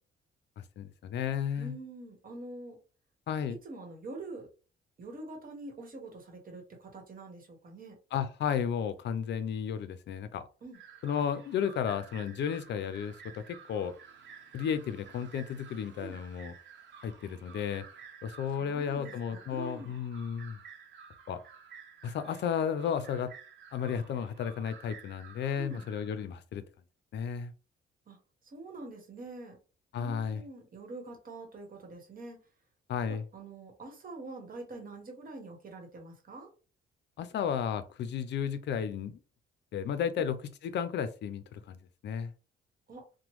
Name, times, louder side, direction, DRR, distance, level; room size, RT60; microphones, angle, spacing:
voice 1, 0.8-1.7 3.3-3.6 8.1-10.5 11.0-13.9 14.5-16.5 17.0-17.8 18.2-20.6 21.3-21.4 22.0-23.3 23.7-26.6 27.1-27.5 29.9-30.4 32.9-33.2 37.2-39.2 39.7-40.4 40.6-41.8 42.0-42.3, left 8 dB, 60° left, 0.4 m, -33 dB
voice 2, 1.6-2.8 3.6-4.5 5.0-8.0 10.6-10.8 16.0-16.2 18.6-20.0 25.6-25.9 28.1-28.2 28.4-29.6 29.9-32.4 33.1-36.5 40.1-40.3 42.9-43.1, right 2 dB, 45° right, 1.1 m, -45 dB
sound 1, 10.7-26.3, right 6 dB, 65° right, 0.9 m, -53 dB
2.9 x 2.1 x 3.0 m
cardioid pair, 90°, 20 cm